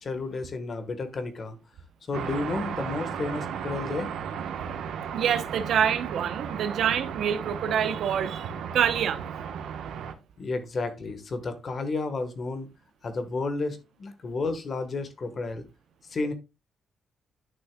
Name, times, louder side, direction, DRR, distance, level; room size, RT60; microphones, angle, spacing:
voice 1, 0.0-1.6 2.1-4.1 10.4-12.7 13.0-15.6 16.1-16.3, left 3 dB, 40° left, 1.3 m, -31 dB
sound 1, 2.1-10.1, right 7 dB, 90° right, 1.1 m, -35 dB
voice 2, 5.1-9.2, right 8 dB, 65° right, 0.8 m, -26 dB
11.0 x 6.3 x 2.3 m
cardioid pair, 150°, 0 cm